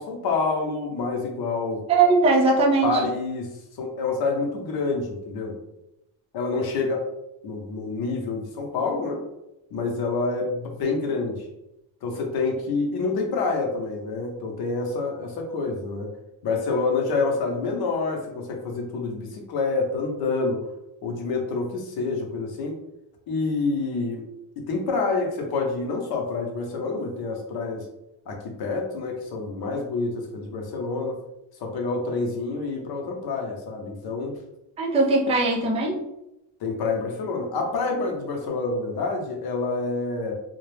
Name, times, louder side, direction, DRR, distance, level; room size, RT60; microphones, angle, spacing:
voice 1, 0.0-1.8 2.8-5.5 6.3-7.0 7.4-9.2 9.7-11.5 12.0-16.1 16.4-20.6 21.0-22.8 23.3-24.2 24.6-27.9 28.3-31.2 31.6-34.3 36.6-40.3, left 3 dB, 60° left, 2 dB, 0.7 m, -27 dB
voice 2, 1.9-2.9 34.8-36.0, right 3 dB, 15° right, -1 dB, 0.3 m, -20 dB
2.3 x 2.1 x 3.2 m, 0.88 s
cardioid pair, 130°, 43 cm